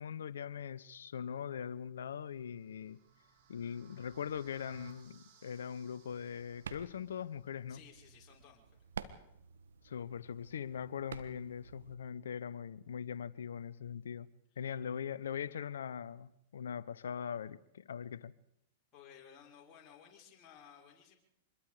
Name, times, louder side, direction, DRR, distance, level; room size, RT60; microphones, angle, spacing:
voice 1, 0.0-3.0 3.5-7.8 9.8-14.3 14.6-18.3, left 8 dB, 75° left, 0.9 m, -41 dB
sound 1, 2.3-7.4, right 6 dB, 55° right, 7.0 m, -63 dB
sound 2, 6.0-11.9, right 7 dB, 80° right, 1.4 m, -51 dB
voice 2, 7.7-8.8 18.9-21.2, left 8 dB, 35° left, 5.5 m, -57 dB
26.0 x 21.5 x 5.0 m
hypercardioid pair, 105°, 0 cm